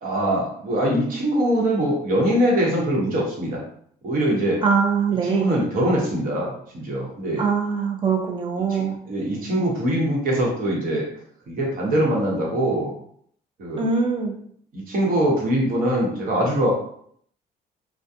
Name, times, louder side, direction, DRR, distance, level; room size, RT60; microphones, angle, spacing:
voice 1, 0.0-3.6 4.0-4.6 5.2-7.4 8.7-11.1 11.5-12.9 13.6-13.8 14.7-16.7, right 1 dB, 55° right, -3 dB, 1.0 m, -23 dB
voice 2, 4.6-5.5 7.4-9.0 13.8-14.4, right 5 dB, 30° right, 2 dB, 0.5 m, -22 dB
2.4 x 2.2 x 2.7 m, 0.63 s
cardioid pair, 110°, 17 cm